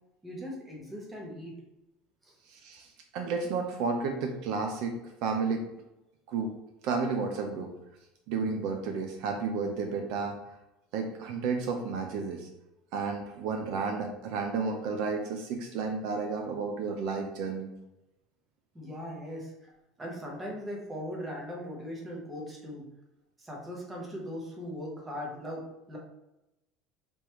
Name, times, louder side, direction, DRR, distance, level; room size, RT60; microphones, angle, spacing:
voice 1, 0.2-1.6 2.2-2.4 18.7-19.7 20.0-22.9 23.4-26.0, equal, 10° right, -3 dB, 0.9 m, -39 dB
voice 2, 2.5-5.7 6.3-6.5 6.8-7.7 8.3-10.4 10.9-12.5 12.9-17.7, right 4 dB, 50° right, 3 dB, 0.5 m, -32 dB
5.1 x 3.1 x 3.0 m, 0.92 s
cardioid pair, 180°, 0 cm